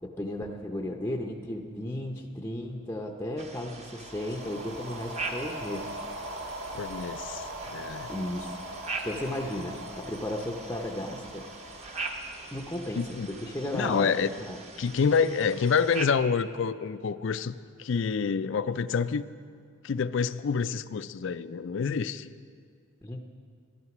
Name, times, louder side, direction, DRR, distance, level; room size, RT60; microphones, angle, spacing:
voice 1, 0.0-6.0 8.1-8.5 9.0-11.4 11.8-11.9 12.5-14.6 23.0-23.2, left 1 dB, 10° left, 1 dB, 0.6 m, -35 dB
sound 1, 3.4-16.1, right 3 dB, 30° right, 0.9 m, -42 dB
sound 2, 3.9-13.4, right 1 dB, 55° right, 1.1 m, -41 dB
voice 2, 6.7-7.5 7.7-8.1 13.0-13.3 13.7-14.3 14.8-19.2 19.8-22.3, left 5 dB, 60° left, 14 dB, 0.4 m, -27 dB
12.5 x 11.5 x 6.0 m, 2.2 s
head